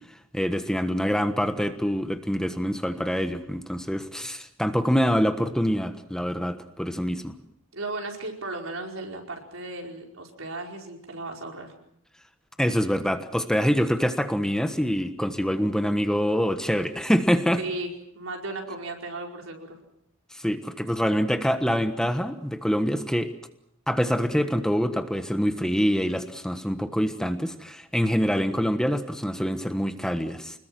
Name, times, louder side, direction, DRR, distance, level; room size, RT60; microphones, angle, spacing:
voice 1, 0.3-7.3 12.6-17.6 20.3-23.3 23.9-30.6, equal, 5° left, 8 dB, 1.3 m, -25 dB
voice 2, 7.7-11.7 17.6-19.8, right 2 dB, 80° right, 2 dB, 4.9 m, -35 dB
26.0 x 21.0 x 7.7 m, 0.72 s
head